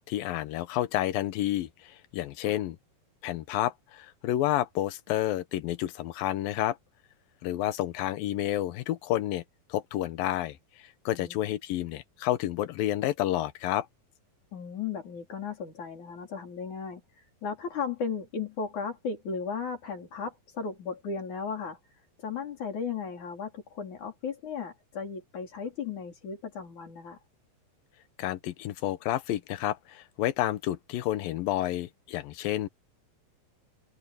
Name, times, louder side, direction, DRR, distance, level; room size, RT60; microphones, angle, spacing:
voice 1, 0.1-2.8 3.2-6.8 7.4-9.4 9.7-13.9 28.2-32.7, left 13 dB, 85° left, 2.8 m, -30 dB
voice 2, 14.5-21.8 22.2-27.2, left 6 dB, 55° left, 5.9 m, -36 dB
open air
omnidirectional pair, 4.0 m